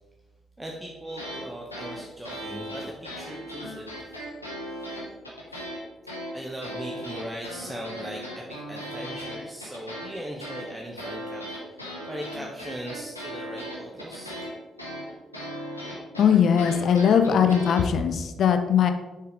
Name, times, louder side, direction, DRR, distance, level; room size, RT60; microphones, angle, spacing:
voice 1, 0.6-4.2 4.7-4.8 6.3-14.4, right 1 dB, 15° right, -1 dB, 1.1 m, -39 dB
sound 1, 1.1-1.5 1.7-5.8 6.1-17.8, equal, 90° left, 1.0 m, -37 dB
voice 2, 16.2-18.9, left 7 dB, 55° left, 8 dB, 0.6 m, -20 dB
6.8 x 4.4 x 5.0 m, 1.1 s
figure-of-eight pair, 40°, 0 cm